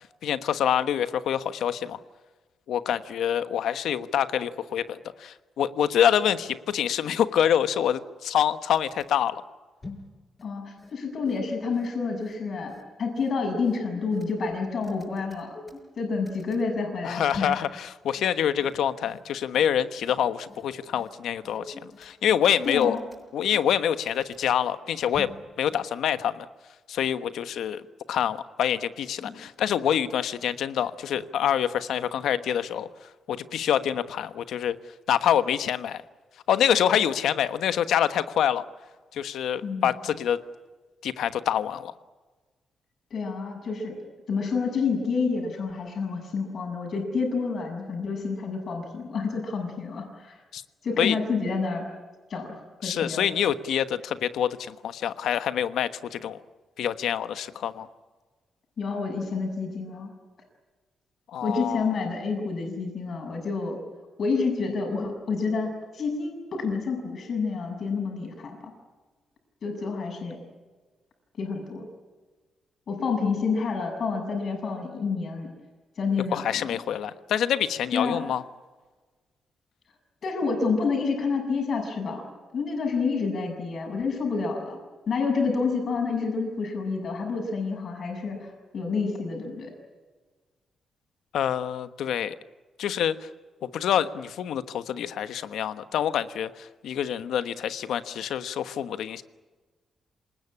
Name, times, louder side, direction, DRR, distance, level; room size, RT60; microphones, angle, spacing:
voice 1, 0.2-2.0 2.7-9.4 17.0-23.0 23.3-25.3 25.6-26.4 26.9-27.8 28.1-32.9 33.3-34.7 35.1-36.0 36.5-38.6 39.1-40.4 41.0-41.9 50.5-50.6 51.0-51.2 52.8-56.4 56.8-57.9 61.3-62.0 76.3-78.4 91.3-92.3 92.8-93.3 93.6-99.2, left 9 dB, 85° left, 12 dB, 1.2 m, -26 dB
sound 1, 8.7-9.1 9.8-10.1 10.4-10.5 10.8-10.9 11.3-11.4 11.7-11.9 12.2-12.3 12.7-12.8 13.2-13.3 13.6-14.3 14.8-16.0 16.3-16.6 17.3-17.6 18.2-18.3 18.6-18.7 19.1-19.2 19.5-19.7 20.0-20.1 20.5-20.6 21.0-21.1 21.4-22.1 22.6-23.8 24.1-24.4 25.1-25.4 25.7-25.8, left 3 dB, 20° left, 6.5 m, -44 dB
voice 2, 10.4-15.5 16.0-17.5 22.6-23.0 29.2-29.3 39.6-39.9 43.1-44.0 44.3-50.4 50.8-51.8 52.3-53.4 58.8-60.1 61.4-63.8 64.2-68.7 69.6-70.4 71.4-71.9 72.9-75.5 76.0-76.7 77.9-78.3 80.2-82.2 82.5-84.8 85.1-89.7, left 4 dB, 50° left, 3 dB, 6.9 m, -29 dB
27.0 x 19.5 x 9.9 m, 1.3 s
wide cardioid pair, 160°, 0 cm